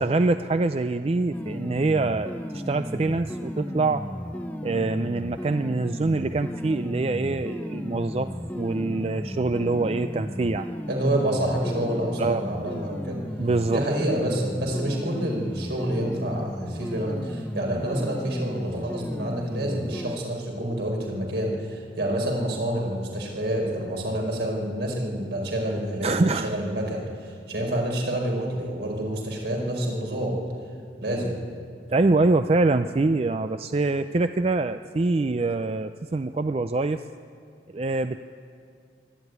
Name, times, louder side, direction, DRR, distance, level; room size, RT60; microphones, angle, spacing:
voice 1, 0.0-4.1 4.6-10.7 12.2-12.4 13.4-13.8 26.0-26.5 31.9-37.0 37.7-38.3, right 3 dB, 35° right, 10 dB, 0.4 m, -25 dB
sound 1, 1.3-20.2, equal, 10° left, 0.7 m, -34 dB
voice 2, 10.9-13.2 13.7-30.4 31.0-31.3, right 1 dB, 75° right, 0 dB, 4.9 m, -28 dB
23.0 x 13.0 x 9.4 m, 2.3 s
head